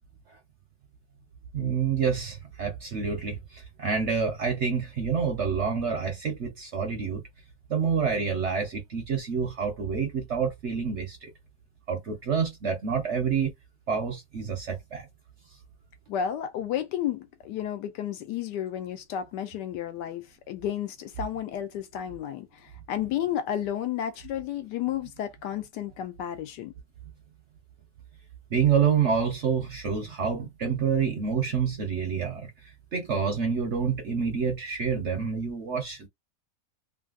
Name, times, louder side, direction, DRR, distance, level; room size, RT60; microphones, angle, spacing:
voice 1, 1.5-7.2 7.7-11.3 11.9-13.5 13.9-15.1 28.5-36.1, right 6 dB, 60° right, 0.8 m, -28 dB
voice 2, 16.1-26.7, left 10 dB, 75° left, 1.2 m, -32 dB
3.1 x 2.6 x 2.4 m
omnidirectional pair, 1.9 m